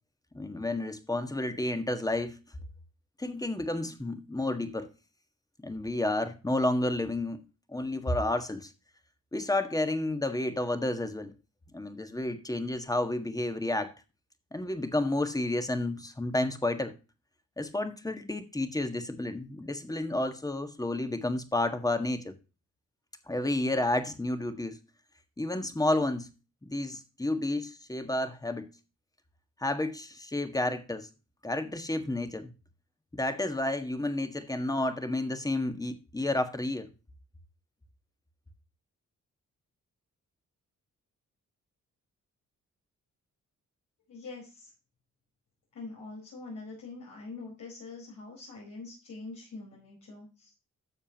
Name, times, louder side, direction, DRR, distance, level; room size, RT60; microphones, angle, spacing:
voice 1, 0.3-2.4 3.2-4.9 5.6-7.4 7.7-8.7 9.3-11.3 11.7-13.9 14.5-16.9 17.6-22.3 23.3-24.8 25.4-26.3 26.6-28.7 29.6-31.1 31.4-32.5 33.1-36.9, left 2 dB, 10° left, 1.6 m, -31 dB
voice 2, 44.1-44.7 45.7-50.5, left 3 dB, 75° left, 4.7 m, -44 dB
12.5 x 7.1 x 2.9 m
cardioid pair, 90°, 31 cm